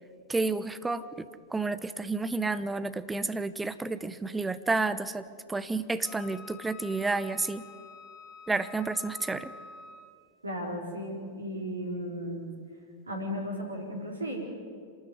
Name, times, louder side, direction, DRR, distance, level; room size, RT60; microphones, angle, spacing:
voice 1, 0.3-7.6 8.5-9.5, right 3 dB, 10° right, 13 dB, 0.8 m, -31 dB
Wind instrument woodwind instrument, 6.0-10.2, left 5 dB, 30° left, 2.8 m, -48 dB
voice 2, 10.4-12.4 13.1-14.5, equal, 80° right, 1 dB, 4.5 m, -35 dB
26.5 x 13.0 x 9.5 m, 2.2 s
figure-of-eight pair, 90°, 0 cm